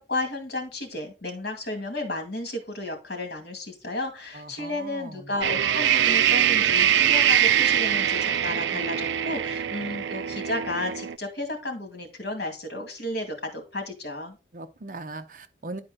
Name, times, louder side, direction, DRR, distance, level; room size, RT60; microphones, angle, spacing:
voice 1, 0.0-14.4, left 2 dB, 65° left, 2.2 m, -33 dB
voice 2, 4.3-5.2 14.5-15.8, right 2 dB, 45° right, 0.6 m, -39 dB
sound 1, 5.4-11.1, right 9 dB, 90° right, 0.4 m, -23 dB
10.5 x 4.4 x 3.8 m
head